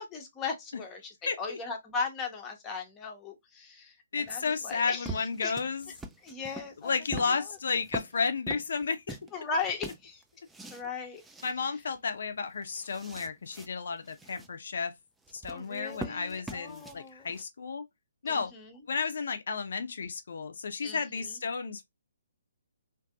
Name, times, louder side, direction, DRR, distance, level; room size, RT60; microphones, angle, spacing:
voice 1, 0.0-5.5 6.2-7.8 9.3-10.2 10.7-11.2 15.5-17.3 18.3-18.8 20.8-21.3, left 4 dB, 15° left, 0.7 m, -38 dB
voice 2, 1.3-1.6 4.1-5.9 6.8-9.0 11.4-14.9 15.3-17.8 18.2-18.5 18.9-21.8, left 5 dB, 65° left, 0.5 m, -32 dB
sound 1, 4.3-9.3 9.6-10.9 11.2-11.5 11.9-12.0 12.4-13.7 14.0-14.5 15.2-17.4, right 2 dB, 5° right, 0.3 m, -43 dB
2.6 x 2.5 x 2.2 m
figure-of-eight pair, 140°, 0 cm